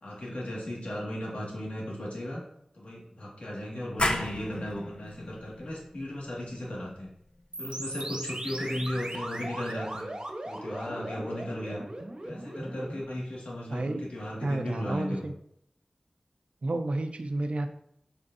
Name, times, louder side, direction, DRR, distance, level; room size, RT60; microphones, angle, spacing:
voice 1, 0.0-2.4 2.7-7.1 7.6-10.1 10.4-11.8 12.2-15.3, left 1 dB, 90° left, -4 dB, 2.4 m, -36 dB
sound 1, 4.0-9.4, left 1 dB, 55° left, 0.9 m, -36 dB
sound 2, 7.5-13.0, right 1 dB, 45° right, 1.4 m, -38 dB
voice 2, 13.7-14.1 14.4-15.3 16.6-17.7, right 2 dB, 70° right, 7 dB, 0.7 m, -31 dB
7.8 x 5.1 x 2.9 m, 0.72 s
wide cardioid pair, 45°, 2 cm